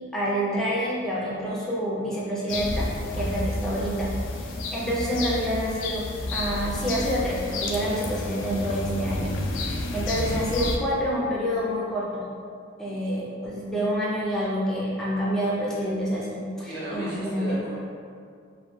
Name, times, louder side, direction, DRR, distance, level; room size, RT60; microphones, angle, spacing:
voice 1, 0.1-2.9 3.1-4.1 4.4-6.0 6.3-12.2 12.8-17.6, equal, 5° left, -7 dB, 0.4 m, -28 dB
sound 1, 2.5-10.8, left 2 dB, 70° left, 0.3 m, -30 dB
voice 2, 16.7-17.8, right 1 dB, 55° right, -8 dB, 0.7 m, -35 dB
2.2 x 2.1 x 3.1 m, 2.2 s
head